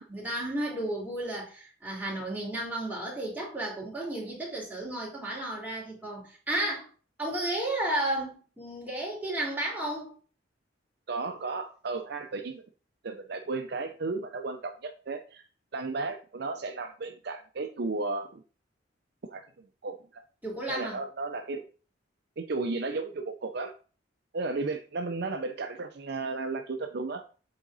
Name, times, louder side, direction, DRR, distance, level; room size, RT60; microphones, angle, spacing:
voice 1, 0.0-6.9 7.2-10.1 20.4-21.0, right 1 dB, 10° right, -5 dB, 2.9 m, -33 dB
voice 2, 11.1-12.6 13.0-15.4 15.7-18.4 19.3-20.2 20.7-21.6 22.4-23.7 24.3-27.2, right 3 dB, 60° right, 5 dB, 0.6 m, -34 dB
7.8 x 3.8 x 4.0 m, 0.38 s
head